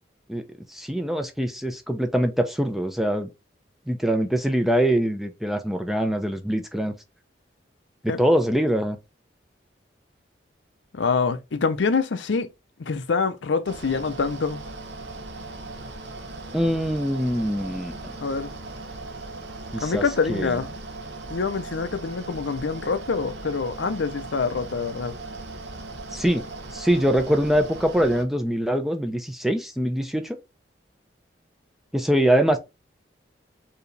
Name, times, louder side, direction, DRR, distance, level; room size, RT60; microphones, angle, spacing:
voice 1, 0.7-3.3 3.9-6.9 8.0-9.0 16.5-18.0 19.7-20.0 20.3-20.6 26.1-26.4 26.7-30.4 31.9-32.6, equal, ahead, 0.5 m, -23 dB
voice 2, 10.9-12.5 12.8-14.6 18.2-18.5 19.8-20.7 21.3-25.1, left 4 dB, 85° left, 0.6 m, -25 dB
Mechanical fan, 13.6-28.2, right 2 dB, 70° right, 0.9 m, -38 dB
4.6 x 2.8 x 3.2 m
head